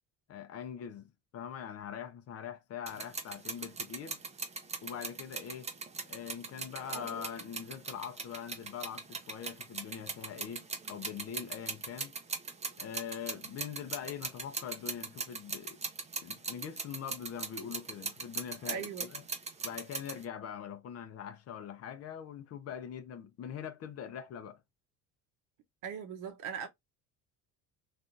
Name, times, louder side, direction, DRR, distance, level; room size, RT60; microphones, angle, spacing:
voice 1, 0.3-1.0 1.3-4.2 4.8-5.7 6.1-12.1 12.8-15.8 16.2-19.2 19.6-24.6, left 8 dB, 45° left, 0.6 m, -43 dB
sound 1, 2.9-20.2, right 4 dB, 20° right, 0.6 m, -40 dB
voice 2, 18.7-19.1 25.8-26.7, right 8 dB, 70° right, 1.0 m, -39 dB
3.3 x 2.5 x 2.6 m
cardioid pair, 115°, 33 cm